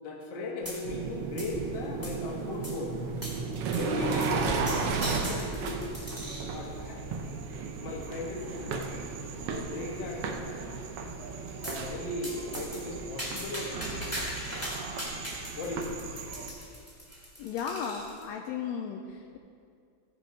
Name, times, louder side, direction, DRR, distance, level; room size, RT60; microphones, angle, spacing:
voice 1, 0.0-2.9 3.7-5.8 6.5-7.0 7.8-8.9 9.5-10.9 11.6-14.3 15.5-16.1, left 3 dB, 50° left, 0 dB, 1.6 m, -38 dB
sound 1, 0.6-1.1 1.4-2.3 2.6-2.8 3.2-3.4 3.7-3.9 4.2-6.5 7.1-7.5 8.1-8.2 8.6-8.7 9.0-9.1 9.5-10.0 11.6-11.8 12.2-18.2, equal, 10° left, 1.7 m, -40 dB
sound 2, 0.8-16.5, right 4 dB, 70° right, 1.5 m, -35 dB
voice 2, 17.4-19.4, left 7 dB, 80° left, 3 dB, 1.7 m, -35 dB
16.0 x 5.4 x 5.1 m, 2.3 s
omnidirectional pair, 3.3 m